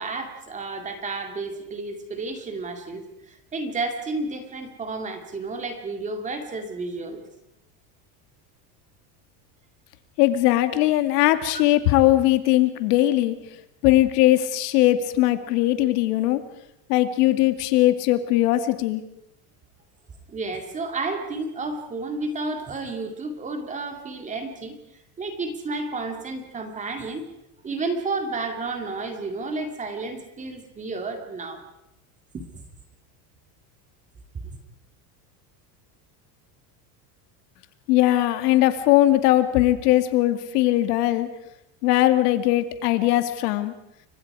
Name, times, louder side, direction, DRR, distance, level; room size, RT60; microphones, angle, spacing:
voice 1, 0.0-7.2 11.5-11.6 20.3-24.8 25.2-27.3 27.6-31.6 32.3-32.4, right 3 dB, 15° right, 5 dB, 2.3 m, -31 dB
voice 2, 10.2-13.4 13.8-16.4 16.9-19.0 37.9-41.3 41.8-43.7, left 15 dB, 80° left, 9 dB, 2.4 m, -20 dB
30.0 x 24.5 x 4.9 m, 0.83 s
cardioid pair, 180°, 46 cm